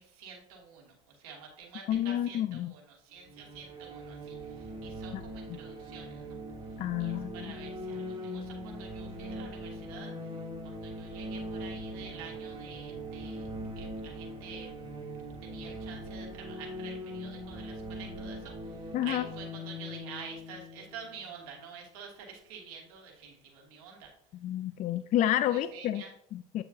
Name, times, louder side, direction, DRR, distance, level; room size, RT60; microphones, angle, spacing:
voice 1, 0.0-6.4 7.0-10.2 10.6-13.5 13.7-14.7 15.4-24.1 25.5-26.1, right 6 dB, 70° right, -1 dB, 2.6 m, -48 dB
voice 2, 1.9-2.7 5.1-5.2 6.8-7.5 18.9-19.2 24.4-26.0 26.3-26.6, left 12 dB, 45° left, 13 dB, 0.4 m, -30 dB
sound 1, 3.2-21.9, equal, 25° right, 2.9 m, -41 dB
8.5 x 6.8 x 2.8 m, 0.73 s
hypercardioid pair, 80°, 19 cm